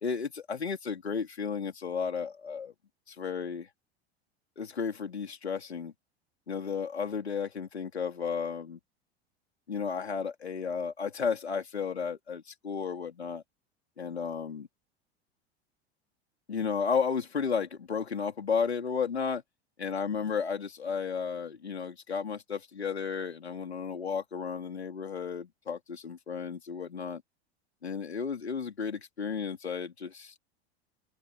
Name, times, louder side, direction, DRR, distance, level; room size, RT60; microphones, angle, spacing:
voice 1, 0.0-2.7 3.1-3.7 4.6-5.9 6.5-8.8 9.7-13.4 14.0-14.7 16.5-19.4 19.8-27.2 27.8-30.4, left 6 dB, 80° left, 3.7 m, -33 dB
figure-of-eight pair, 80°, 32 cm